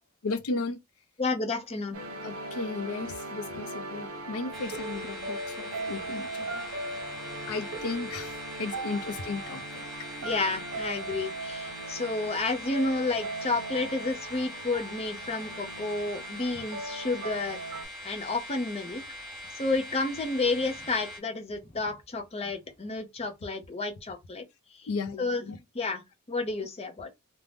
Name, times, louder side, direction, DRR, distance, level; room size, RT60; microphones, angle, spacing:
voice 1, 0.2-0.8 2.2-6.5 7.5-9.9 24.9-25.6, left 3 dB, 75° left, 0.5 m, -35 dB
voice 2, 1.2-2.0 10.2-17.6 18.0-19.0 19.5-24.4 24.8-24.9 25.2-25.5 25.7-26.0 26.3-27.1, left 3 dB, 25° left, 0.5 m, -31 dB
sound 1, 1.9-17.8, right 2 dB, 75° right, 0.8 m, -39 dB
sound 2, 4.5-21.2, left 1 dB, ahead, 0.8 m, -42 dB
2.5 x 2.1 x 3.3 m
head